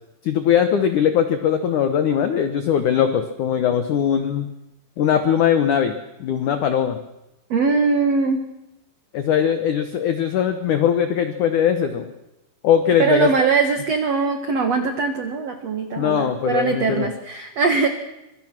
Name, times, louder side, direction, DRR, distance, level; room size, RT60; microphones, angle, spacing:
voice 1, 0.2-4.5 5.0-5.9 6.2-7.0 9.1-12.1 12.6-13.3 16.0-17.1, left 8 dB, 80° left, 8 dB, 1.7 m, -20 dB
voice 2, 7.5-8.4 13.0-17.9, right 4 dB, 80° right, 7 dB, 1.4 m, -21 dB
25.5 x 23.5 x 6.1 m, 0.94 s
omnidirectional pair, 5.4 m